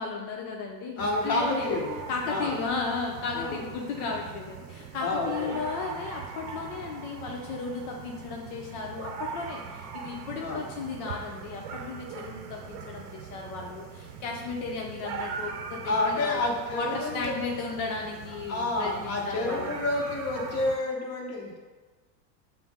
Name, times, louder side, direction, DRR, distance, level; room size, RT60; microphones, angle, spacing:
voice 1, 0.0-1.7 2.1-16.5 16.7-19.8, left 4 dB, 60° left, 0 dB, 0.7 m, -35 dB
voice 2, 1.0-1.9 2.3-2.6 3.3-3.7 5.0-5.6 10.4-10.6 15.8-17.3 18.5-21.6, left 2 dB, 30° left, -1 dB, 0.8 m, -29 dB
sound 1, 1.0-20.8, right 6 dB, 85° right, 0.7 m, -41 dB
5.8 x 2.0 x 3.5 m, 1.4 s
supercardioid pair, 120°, 49 cm